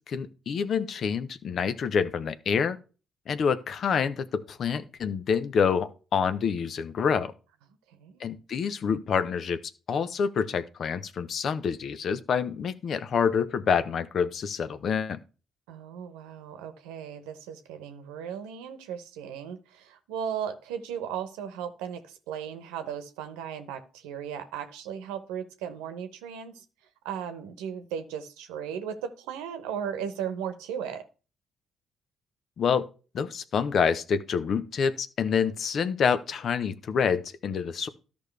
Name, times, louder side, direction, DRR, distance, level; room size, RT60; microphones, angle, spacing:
voice 1, 0.1-2.8 3.3-7.3 8.2-9.6 9.9-15.2 32.6-32.9 33.1-37.9, left 6 dB, 60° left, 0.7 m, -27 dB
voice 2, 7.9-8.2 15.7-26.6 27.0-31.0, right 8 dB, 80° right, 1.0 m, -36 dB
13.0 x 5.2 x 3.3 m
hypercardioid pair, 50°, 0 cm